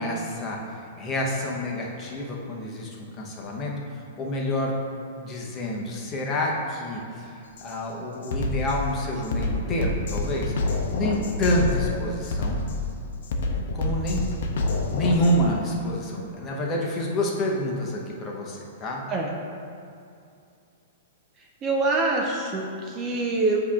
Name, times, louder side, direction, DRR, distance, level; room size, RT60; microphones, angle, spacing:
voice 1, 0.0-3.7 4.2-4.8 5.2-7.0 7.6-10.6 10.9-12.7 13.7-14.3 14.9-19.1, left 1 dB, 25° left, -2 dB, 0.9 m, -28 dB
Drum kit, 7.6-7.7 8.2-15.4, left 2 dB, 65° left, 0.7 m, -28 dB
voice 2, 21.6-23.6, right 3 dB, 25° right, -1 dB, 0.6 m, -25 dB
8.2 x 2.9 x 4.8 m, 2.5 s
hypercardioid pair, 155°, 0 cm